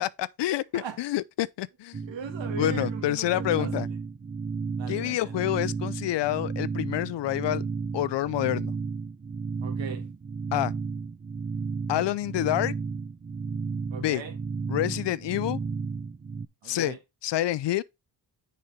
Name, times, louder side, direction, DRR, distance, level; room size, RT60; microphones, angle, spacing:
voice 1, 0.0-2.0 2.6-3.9 4.9-7.6 7.9-8.7 10.5-10.7 11.9-12.7 14.0-14.2 14.7-15.6 16.6-16.9 17.2-17.8, left 14 dB, 70° left, 0.6 m, -27 dB
sound 1, 1.9-16.5, right 5 dB, 25° right, 0.6 m, -33 dB
voice 2, 2.0-3.9 4.8-5.4 9.6-10.1 13.9-14.4 16.6-17.0, right 6 dB, 75° right, 2.1 m, -39 dB
6.7 x 5.3 x 4.3 m
cardioid pair, 60°, 45 cm